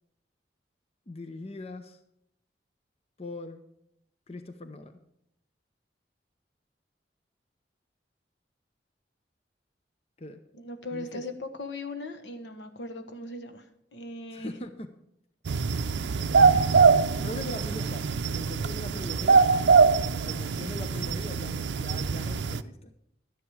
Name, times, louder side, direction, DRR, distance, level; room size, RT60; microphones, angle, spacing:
voice 1, 1.1-2.0 3.2-3.6 4.3-5.0 10.2-10.4 10.9-11.2 14.3-14.9 17.2-19.4 19.9-22.9, left 2 dB, 35° left, 9 dB, 0.6 m, -41 dB
voice 2, 10.5-13.6 13.9-14.6, left 2 dB, 80° left, 7 dB, 1.2 m, -38 dB
sound 1, 15.4-22.6, right 5 dB, 80° right, 0.5 m, -23 dB
12.0 x 10.0 x 4.9 m, 0.77 s
head